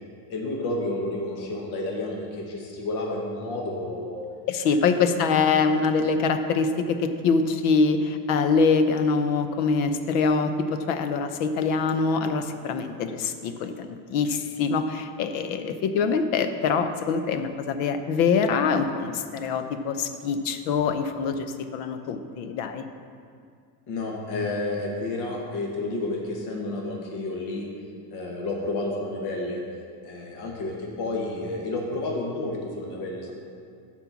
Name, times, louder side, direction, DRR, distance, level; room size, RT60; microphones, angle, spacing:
voice 1, 0.3-4.2 4.6-4.7 23.9-27.7 28.1-29.6 30.0-33.3, left 2 dB, 55° left, -1 dB, 1.4 m, -30 dB
voice 2, 4.5-21.5 21.7-22.8, left 5 dB, 85° left, 9 dB, 0.8 m, -24 dB
9.9 x 4.5 x 7.1 m, 2.3 s
cardioid pair, 170°, 47 cm